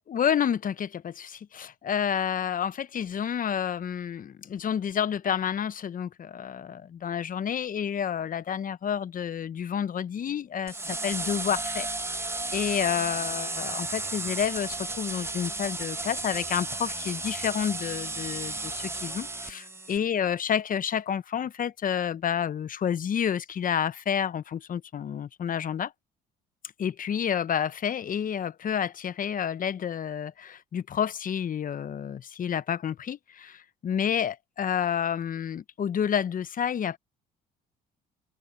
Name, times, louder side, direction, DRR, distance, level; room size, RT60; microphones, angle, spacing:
voice 1, 0.1-11.9 12.2-25.9 26.8-37.0, left 8 dB, 45° left, 0.9 m, -29 dB
sound 1, 10.7-20.0, right 2 dB, 10° right, 1.3 m, -34 dB
hypercardioid pair, 65°, 20 cm